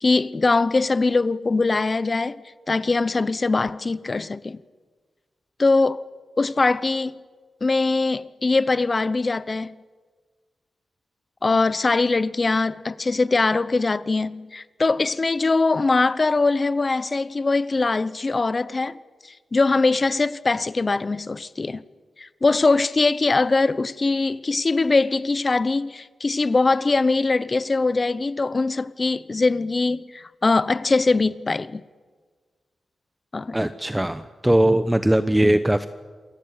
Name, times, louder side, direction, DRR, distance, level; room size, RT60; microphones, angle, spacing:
voice 1, 0.0-2.4 2.7-4.6 5.6-6.0 6.4-7.2 7.6-9.8 11.4-19.0 19.5-21.8 22.2-31.8 33.3-33.6, left 3 dB, 35° left, 0.9 m, -22 dB
voice 2, 33.5-35.9, right 1 dB, 10° right, 0.9 m, -20 dB
28.0 x 22.5 x 9.0 m
wide cardioid pair, 100°, 0 cm